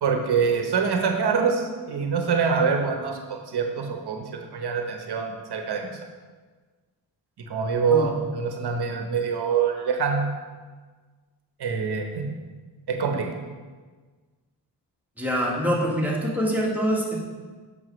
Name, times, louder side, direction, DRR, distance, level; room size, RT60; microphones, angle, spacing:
voice 1, 0.0-5.9 7.5-10.3 11.6-12.3 12.9-13.3, right 5 dB, 65° right, 3 dB, 1.1 m, -25 dB
voice 2, 15.2-17.2, equal, 5° right, -3 dB, 1.7 m, -25 dB
7.7 x 5.7 x 3.2 m, 1.4 s
cardioid pair, 65°, 42 cm